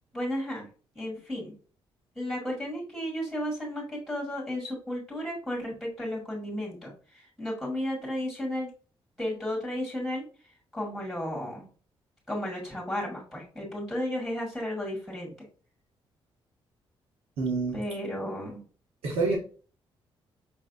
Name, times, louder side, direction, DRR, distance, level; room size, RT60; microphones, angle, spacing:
voice 1, 0.1-0.7 1.0-1.5 2.2-8.7 9.2-10.3 10.7-11.7 12.3-15.5 17.7-18.6, left 1 dB, 5° right, -3 dB, 1.9 m, -33 dB
voice 2, 17.4-17.8 19.0-19.4, right 4 dB, 85° right, -2 dB, 1.1 m, -27 dB
5.4 x 3.3 x 2.6 m, 0.39 s
cardioid pair, 105°, 10 cm